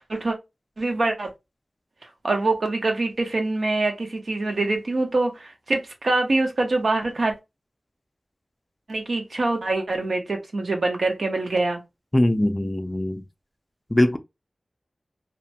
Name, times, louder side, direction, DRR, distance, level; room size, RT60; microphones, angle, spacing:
voice 1, 0.8-1.3 2.2-7.3 8.9-11.8, right 2 dB, 70° right, 0.8 m, -24 dB
voice 2, 12.1-13.2 13.9-14.2, left 1 dB, 20° left, 0.4 m, -21 dB
2.8 x 2.1 x 2.7 m
wide cardioid pair, 80°, 0 cm